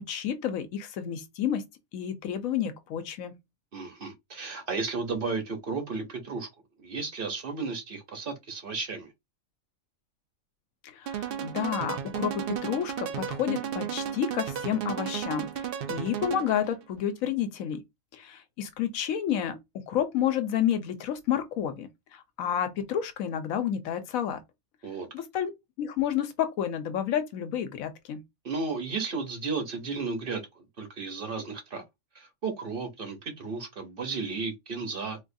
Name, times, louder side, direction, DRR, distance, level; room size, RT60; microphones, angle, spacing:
voice 1, 0.1-1.6 1.9-3.3 10.8-17.8 18.1-24.4 25.1-25.5 25.8-28.2, left 9 dB, 90° left, 1.1 m, -30 dB
voice 2, 3.7-6.5 6.8-9.1 24.8-25.1 28.4-31.8 32.1-35.2, right 4 dB, 50° right, 0.9 m, -34 dB
sound 1, 11.1-16.7, right 9 dB, 65° right, 0.6 m, -34 dB
4.2 x 2.3 x 2.6 m
omnidirectional pair, 1.4 m